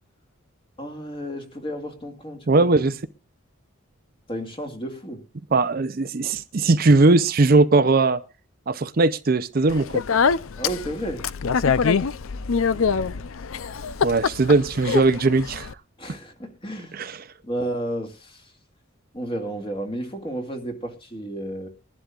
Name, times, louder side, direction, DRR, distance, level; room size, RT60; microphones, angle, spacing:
voice 1, 0.8-2.9 4.3-5.2 10.5-11.3 16.0-17.0 17.4-18.5 19.1-21.7, right 1 dB, 25° left, 4 dB, 2.2 m, -32 dB
voice 2, 2.5-2.9 5.5-8.2 8.7-10.0 14.0-15.7 16.9-17.2, right 3 dB, 45° right, 12 dB, 0.6 m, -19 dB
Speech, 9.7-15.7, left 6 dB, 75° left, 0.6 m, -24 dB
22.0 x 11.5 x 2.4 m, 0.34 s
head